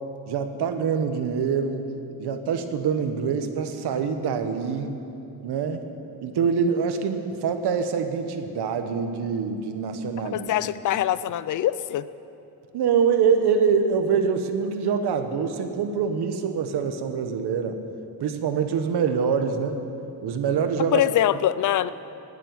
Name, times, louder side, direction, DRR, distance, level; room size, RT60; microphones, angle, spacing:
voice 1, 0.3-1.9 2.2-5.0 5.4-5.8 6.2-10.5 12.7-17.8 18.2-19.8 20.2-21.0, right 6 dB, 70° right, 7 dB, 1.3 m, -25 dB
voice 2, 10.2-12.1 20.9-21.9, left 12 dB, 50° left, 16 dB, 0.5 m, -23 dB
18.0 x 7.7 x 9.5 m, 2.9 s
wide cardioid pair, 180°, 40 cm